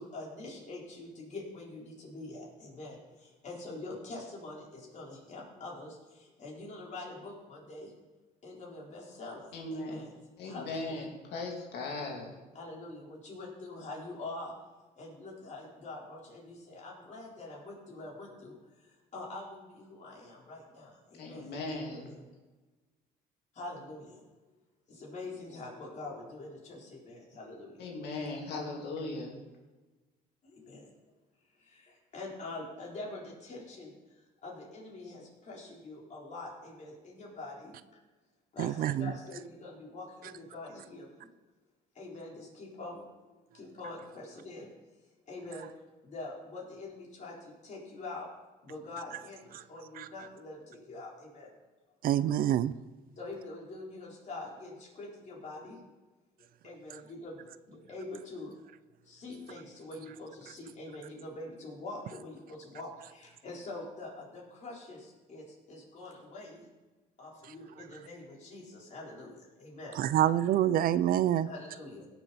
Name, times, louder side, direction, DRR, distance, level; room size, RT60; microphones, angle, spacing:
voice 1, 0.0-7.9 8.4-10.1 10.4-11.0 12.5-14.5 15.0-22.2 23.5-24.2 24.9-27.9 30.4-30.9 31.5-37.8 38.5-41.3 41.9-44.7 45.3-45.7 46.0-48.3 48.6-51.5 53.2-55.8 56.4-58.6 59.0-66.7 67.2-70.2 71.4-72.1, left 2 dB, 45° left, 4.1 m, -45 dB
voice 2, 9.5-10.0 10.4-12.3 21.2-22.1 27.8-29.3, left 2 dB, 75° left, 2.8 m, -38 dB
voice 3, 38.6-39.1 49.5-49.6 50.0-50.1 52.0-52.7 70.0-71.5, right 11 dB, 60° right, 0.4 m, -26 dB
17.5 x 7.1 x 4.2 m
cardioid pair, 110°, 17 cm